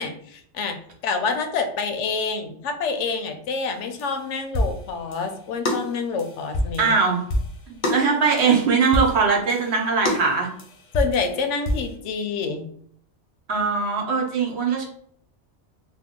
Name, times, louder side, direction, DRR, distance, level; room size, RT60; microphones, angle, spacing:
voice 1, 0.0-7.0 10.9-12.7, left 5 dB, 85° left, 7 dB, 0.9 m, -27 dB
sound 1, 3.7-5.4 5.6-8.6 8.9-11.9, left 1 dB, 50° left, 0.7 m, -27 dB
voice 2, 6.8-7.2 7.7-10.5 13.5-14.8, right 5 dB, 70° right, 0 dB, 1.0 m, -21 dB
2.7 x 2.1 x 3.6 m, 0.63 s
omnidirectional pair, 1.2 m